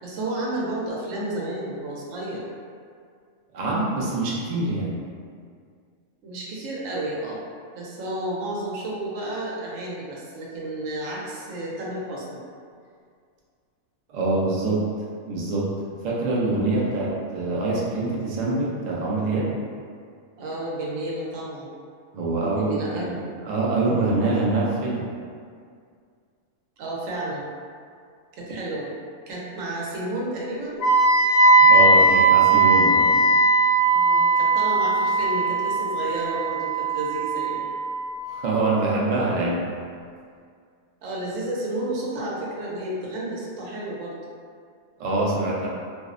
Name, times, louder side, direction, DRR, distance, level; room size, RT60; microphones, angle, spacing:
voice 1, 0.0-2.4 6.2-7.4 7.7-12.4 16.4-16.7 20.4-21.7 22.5-23.2 26.8-27.4 28.3-28.9 29.3-30.8 33.9-37.7 41.0-44.2, right 1 dB, 80° right, -4 dB, 0.9 m, -31 dB
voice 2, 3.5-5.0 14.1-14.8 15.3-15.7 16.0-19.5 22.1-23.1 23.5-25.0 31.6-33.1 38.3-39.6 45.0-45.7, right 2 dB, 65° right, -6 dB, 0.4 m, -24 dB
Wind instrument woodwind instrument, 30.8-38.7, right 2 dB, 65° left, 0.8 m, -19 dB
2.5 x 2.0 x 2.4 m, 2.2 s
omnidirectional pair, 1.3 m